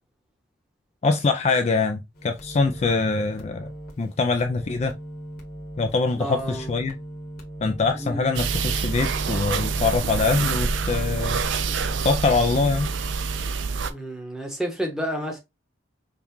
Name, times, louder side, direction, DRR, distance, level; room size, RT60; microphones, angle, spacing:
voice 1, 1.0-3.7 4.0-4.9 5.8-6.9 7.6-11.4 12.0-12.9, left 3 dB, 35° left, 0.3 m, -23 dB
sound 1, 2.1-13.5, right 1 dB, 50° left, 1.2 m, -39 dB
voice 2, 6.2-6.7 8.0-8.4 13.9-15.4, equal, 5° right, 0.9 m, -30 dB
sound 2, 8.3-13.9, right 5 dB, 75° right, 0.5 m, -27 dB
5.5 x 2.3 x 3.0 m
head